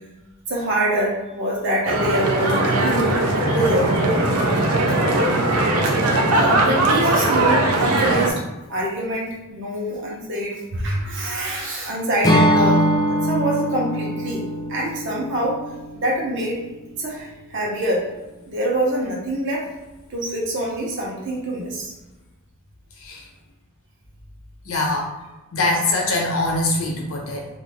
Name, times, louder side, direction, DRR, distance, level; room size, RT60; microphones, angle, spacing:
voice 1, 0.5-3.1 3.3-3.9 6.3-8.4 8.7-12.9 13.2-14.4 14.7-15.6 15.9-16.6 17.0-18.0 18.5-19.7 20.1-21.9, right 1 dB, 55° right, -3 dB, 0.8 m, -25 dB
sound 1, 1.9-8.3, right 2 dB, 90° right, 0.5 m, -19 dB
Acoustic guitar / Strum, 12.2-16.3, equal, 15° left, 0.4 m, -22 dB
voice 2, 24.6-25.1 25.5-27.5, left 2 dB, 75° left, -1 dB, 0.8 m, -23 dB
2.6 x 2.6 x 3.3 m, 1.1 s
head